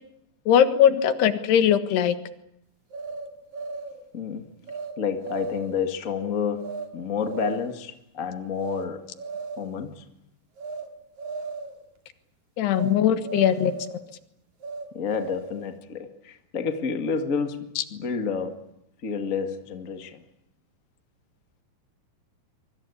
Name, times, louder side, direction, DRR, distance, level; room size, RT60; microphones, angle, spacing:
voice 1, 0.5-2.2 12.6-14.0, left 9 dB, 70° left, 10 dB, 3.5 m, -20 dB
sound 1, 2.9-4.0 4.7-4.9 5.2-5.8 6.6-6.9 7.2-7.8 8.6-8.9 9.2-9.8 10.6-10.9 11.2-11.8 12.7-13.0 13.2-14.0 14.6-15.6, right 4 dB, 50° right, 3.4 m, -36 dB
voice 2, 4.1-4.5 5.0-9.1 9.6-10.1 14.9-18.6 19.0-20.2, left 6 dB, 50° left, 6 dB, 0.9 m, -30 dB
25.5 x 23.5 x 8.5 m, 0.80 s
omnidirectional pair, 5.0 m